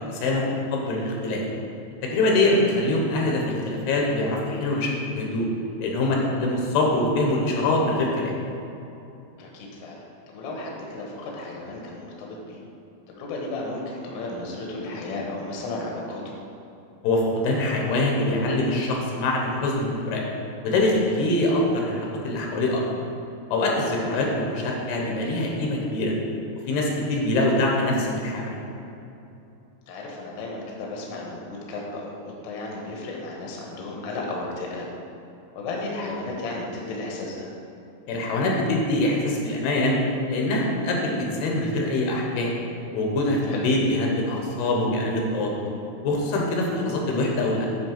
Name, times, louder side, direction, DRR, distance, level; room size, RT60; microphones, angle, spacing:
voice 1, 0.0-1.4 2.0-5.4 5.8-8.3 17.0-20.2 20.6-22.8 23.5-26.1 26.7-28.6 38.1-40.0 40.3-42.6 42.9-45.5 46.0-47.7, left 2 dB, 80° left, -1 dB, 3.1 m, -24 dB
voice 2, 9.4-10.0 10.3-12.6 13.1-16.3 24.2-24.3 29.9-34.9 35.6-37.5 43.5-43.6, left 2 dB, 60° left, -2 dB, 2.2 m, -34 dB
9.6 x 4.3 x 6.0 m, 2.8 s
omnidirectional pair, 4.6 m